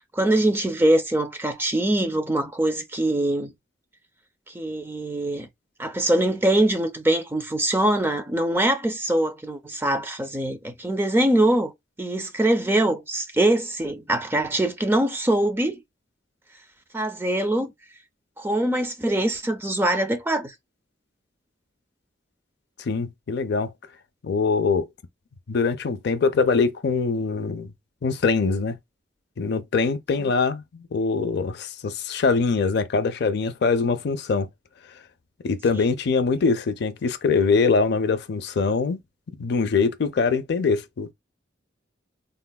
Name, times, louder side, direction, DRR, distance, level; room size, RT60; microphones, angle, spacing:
voice 1, 0.1-3.5 4.5-5.5 5.8-11.7 12.0-15.8 16.9-17.7 18.4-20.5 30.2-30.3 35.7-35.9, right 1 dB, 10° right, 0.4 m, -23 dB
voice 2, 22.9-23.7 24.2-24.9 25.5-27.7 28.0-28.8 29.4-34.5 35.4-39.0 39.4-41.1, left 4 dB, 60° left, 0.4 m, -23 dB
3.5 x 2.2 x 2.2 m
head